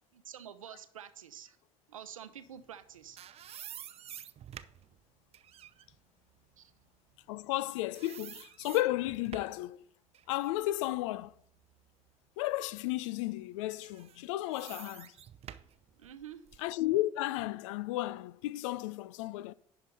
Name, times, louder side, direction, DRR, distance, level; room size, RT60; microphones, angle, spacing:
voice 1, 0.1-1.6 1.9-3.2 6.6-6.7 16.0-16.4, right 9 dB, 85° right, 0.7 m, -48 dB
sound 1, 2.7-7.6 7.9-9.7 10.1-12.1 12.6-12.7 13.7-16.7, right 10 dB, 40° right, 0.5 m, -50 dB
voice 2, 7.3-9.8 10.3-11.3 12.4-15.1 16.6-19.5, left 16 dB, 70° left, 0.4 m, -33 dB
10.5 x 4.7 x 5.3 m
figure-of-eight pair, 60°, 17 cm